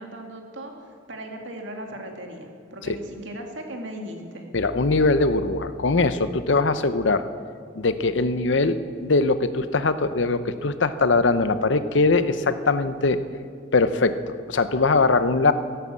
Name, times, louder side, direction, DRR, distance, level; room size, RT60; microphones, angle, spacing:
voice 1, 0.0-4.4, right 1 dB, 70° right, 2 dB, 2.2 m, -37 dB
voice 2, 4.5-7.2 7.8-13.2 13.7-15.5, left 3 dB, 70° left, 12 dB, 0.8 m, -21 dB
15.0 x 11.5 x 7.6 m, 2.2 s
head